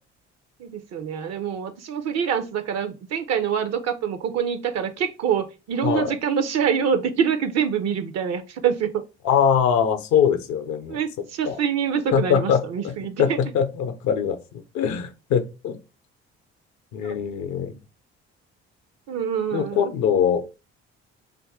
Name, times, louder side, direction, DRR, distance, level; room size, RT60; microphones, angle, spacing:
voice 1, 0.6-9.0 10.9-13.4 17.0-17.1 19.1-19.9, right 7 dB, 60° right, 0.5 m, -25 dB
voice 2, 5.8-6.1 9.2-11.0 11.4-11.6 12.1-14.4 14.7-15.8 16.9-17.8 19.5-20.4, left 8 dB, 70° left, 0.6 m, -22 dB
2.6 x 2.5 x 3.4 m
hypercardioid pair, 55°, 30 cm